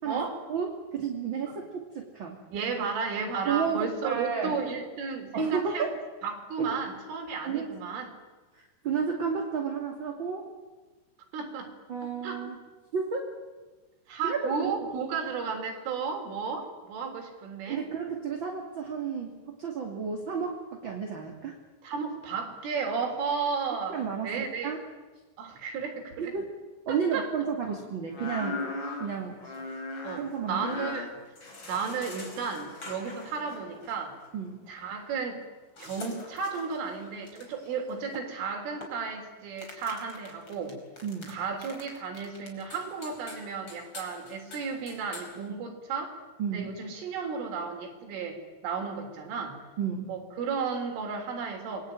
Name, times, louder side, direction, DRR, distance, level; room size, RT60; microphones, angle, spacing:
voice 1, 0.1-0.4 1.5-1.6 2.5-5.9 6.2-8.1 11.3-11.7 12.2-12.4 14.1-17.9 21.8-24.7 25.4-26.4 26.9-27.3 30.0-31.1 31.7-34.2 34.7-35.4 35.8-40.8 41.3-46.2 46.5-49.6 50.1-51.9, right 5 dB, 85° right, 4 dB, 6.2 m, -33 dB
voice 2, 0.9-2.4 3.4-4.6 5.3-5.9 6.6-6.7 7.4-7.8 8.8-10.5 11.9-12.6 12.9-13.3 14.2-14.9 17.7-21.6 23.9-24.8 26.2-26.5 26.9-28.6 29.0-29.4 30.2-30.7 34.3-34.6 41.0-41.4 45.5-45.6 46.4-46.7 49.8-50.1, right 6 dB, 30° right, 1 dB, 2.5 m, -32 dB
sound 1, 28.1-34.1 35.8-39.1 39.6-41.3 41.6-45.4, left 2 dB, 25° left, 5.2 m, -40 dB
27.5 x 22.5 x 9.1 m, 1.2 s
omnidirectional pair, 5.5 m